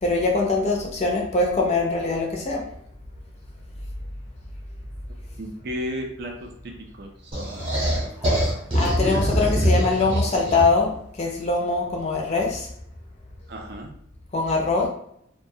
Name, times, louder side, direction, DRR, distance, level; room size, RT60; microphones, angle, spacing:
voice 1, 0.0-2.6 8.7-12.7 14.3-14.9, left 3 dB, 35° left, 0 dB, 0.4 m, -23 dB
voice 2, 5.4-6.7 7.0-7.7 9.0-9.4 9.6-9.7 10.1-10.2 13.5-13.9, equal, 50° right, 2 dB, 0.4 m, -35 dB
sound 1, 7.3-10.9, equal, 25° right, 0.8 m, -23 dB
2.3 x 2.2 x 2.6 m, 0.71 s
head